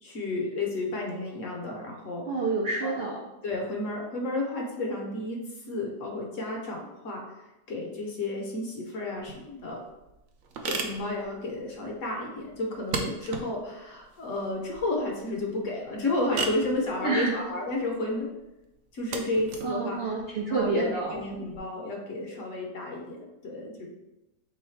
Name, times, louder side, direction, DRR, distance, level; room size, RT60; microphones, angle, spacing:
voice 1, 0.0-2.5 2.8-3.0 3.4-5.4 5.7-7.3 7.7-9.8 10.7-18.3 18.9-20.0 20.5-23.9, left 2 dB, 60° left, -1 dB, 1.0 m, -32 dB
voice 2, 2.3-3.2 17.0-17.4 19.6-21.1, right 3 dB, 85° right, -2 dB, 0.5 m, -28 dB
sound 1, 9.2-21.6, right 4 dB, 65° right, 0.9 m, -38 dB
3.4 x 3.2 x 4.4 m, 0.97 s
omnidirectional pair, 1.8 m